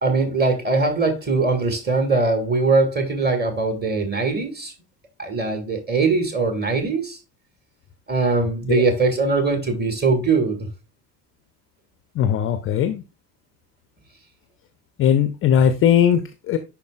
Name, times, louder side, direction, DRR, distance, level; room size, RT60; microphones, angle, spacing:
voice 1, 0.0-4.7 5.2-7.2 8.1-10.7, right 3 dB, 20° right, 1.6 m, -21 dB
voice 2, 12.2-13.0 15.0-16.6, left 9 dB, 30° left, 0.4 m, -19 dB
10.5 x 4.1 x 2.2 m
figure-of-eight pair, 60°, 47 cm